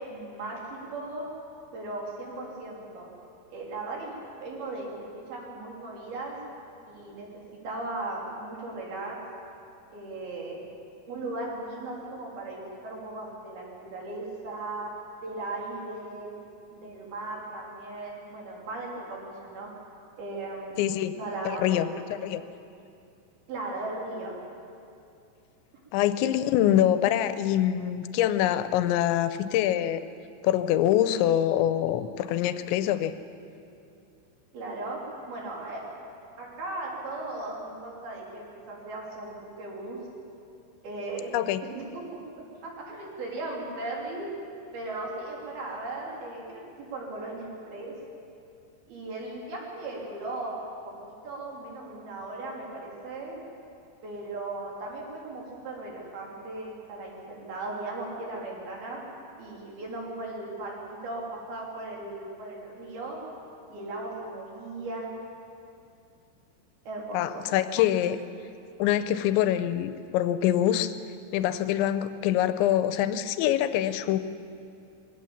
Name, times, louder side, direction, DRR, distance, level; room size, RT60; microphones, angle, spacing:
voice 1, 0.1-1.3 1.7-3.1 3.5-6.4 6.9-9.2 9.9-10.6 11.1-14.9 15.2-16.4 16.7-19.7 20.2-20.8 21.1-21.8 22.3-22.5 23.5-24.3 34.5-35.8 36.4-40.0 40.8-41.3 41.6-44.3 44.7-47.9 48.9-50.6 50.8-53.4 54.0-59.0 59.4-63.2 63.7-65.1 66.8-67.5, right 2 dB, 55° right, -2 dB, 5.1 m, -37 dB
voice 2, 20.8-21.1 21.5-21.9 22.2-22.4 25.9-30.0 30.4-33.1 41.3-41.6 67.1-68.2 68.8-70.9 71.3-74.2, left 11 dB, 85° left, 11 dB, 3.0 m, -24 dB
22.5 x 17.0 x 7.2 m, 2.5 s
omnidirectional pair, 5.3 m